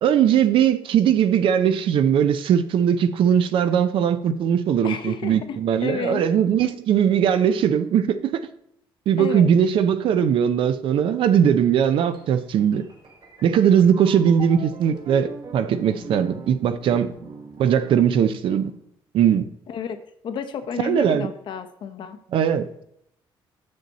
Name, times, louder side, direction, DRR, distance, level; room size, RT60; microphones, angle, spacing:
voice 1, 0.0-8.4 9.1-12.9 13.4-17.1 17.6-18.7 19.1-19.5 20.8-21.3 22.3-22.8, right 8 dB, 70° right, 11 dB, 0.6 m, -20 dB
voice 2, 4.8-6.2 9.2-9.5 19.7-20.0 20.2-22.2, left 7 dB, 60° left, 7 dB, 0.9 m, -31 dB
sound 1, 12.1-18.8, right 2 dB, 55° right, 1.4 m, -42 dB
6.9 x 6.7 x 4.2 m, 0.73 s
cardioid pair, 120°, 9 cm